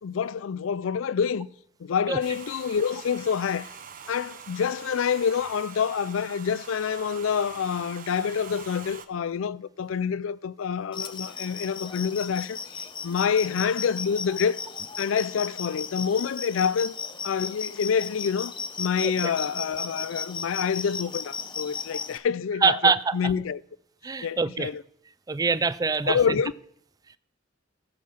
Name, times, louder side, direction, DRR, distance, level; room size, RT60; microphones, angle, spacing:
voice 1, 0.0-1.5 1.8-3.7 4.1-14.6 15.0-16.9 17.2-23.6 24.2-24.8 26.1-26.5, left 7 dB, 75° left, 0.4 m, -27 dB
Domestic sounds home sounds, 2.2-9.1, right 7 dB, 45° right, 0.8 m, -44 dB
sound 1, 10.9-22.2, left 6 dB, 25° left, 0.6 m, -36 dB
voice 2, 22.6-23.3 24.0-24.7 25.3-26.2, right 5 dB, 20° right, 0.3 m, -24 dB
14.5 x 5.7 x 6.3 m
head